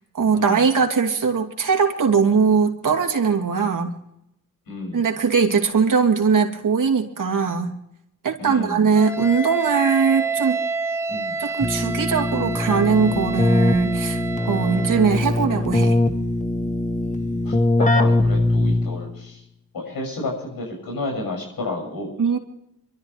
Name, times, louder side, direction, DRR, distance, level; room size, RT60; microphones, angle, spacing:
voice 1, 0.1-4.0 4.9-7.8 8.2-10.6 11.4-14.2 14.4-16.0 22.2-22.4, right 5 dB, 65° right, 3 dB, 2.8 m, -20 dB
voice 2, 4.7-5.1 8.4-8.9 11.1-11.4 14.6-14.7 17.0-19.4 19.7-22.2, left 2 dB, 85° left, 1 dB, 7.0 m, -31 dB
Wind instrument woodwind instrument, 9.0-15.1, right 4 dB, 10° right, 1.7 m, -29 dB
Keyboard (musical), 11.6-19.2, left 2 dB, 20° left, 1.6 m, -22 dB
26.0 x 13.0 x 3.4 m, 0.80 s
cardioid pair, 70°, 34 cm